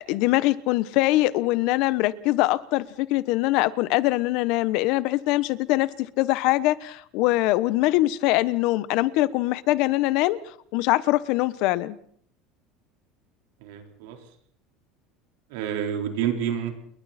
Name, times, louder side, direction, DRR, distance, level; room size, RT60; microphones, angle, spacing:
voice 1, 0.0-10.4 10.7-12.0, left 18 dB, 60° left, 16 dB, 1.1 m, -23 dB
voice 2, 13.6-14.2 15.5-16.7, right 9 dB, 80° right, 4 dB, 4.3 m, -28 dB
29.0 x 22.0 x 4.4 m, 0.62 s
cardioid pair, 155°, 0 cm